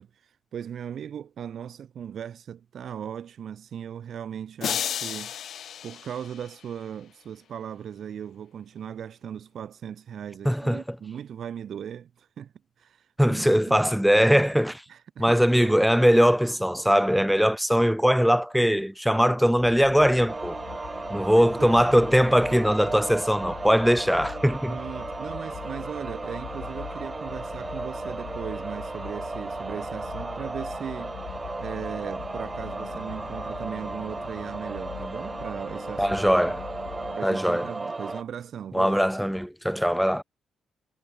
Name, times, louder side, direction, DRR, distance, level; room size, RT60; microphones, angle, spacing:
voice 1, 0.0-5.3 5.8-12.5 12.8-13.8 14.9-15.8 21.3-22.0 24.7-31.2 31.6-36.2 37.1-39.0, right 8 dB, 60° right, 0.9 m, -38 dB
sound 1, 4.6-6.9, left 9 dB, 65° left, 0.8 m, -33 dB
voice 2, 10.5-11.0 13.2-14.8 15.2-20.6 21.1-24.8 36.0-36.7 37.2-37.7 38.7-40.2, equal, ahead, 0.3 m, -21 dB
sound 2, 19.5-37.2, left 13 dB, 80° left, 2.3 m, -43 dB
sound 3, 20.3-38.2, right 3 dB, 20° right, 1.2 m, -35 dB
cardioid pair, 90°, 0 cm